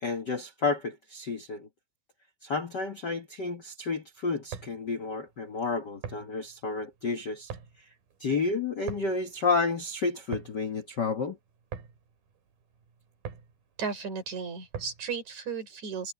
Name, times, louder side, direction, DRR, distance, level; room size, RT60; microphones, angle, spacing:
voice 1, 0.0-1.7 2.4-7.5 8.2-11.4, left 4 dB, 60° left, 1.0 m, -31 dB
sound 1, 4.3-15.2, right 7 dB, 75° right, 5.1 m, -45 dB
voice 2, 13.8-16.1, right 5 dB, 50° right, 5.8 m, -35 dB
omnidirectional pair, 4.2 m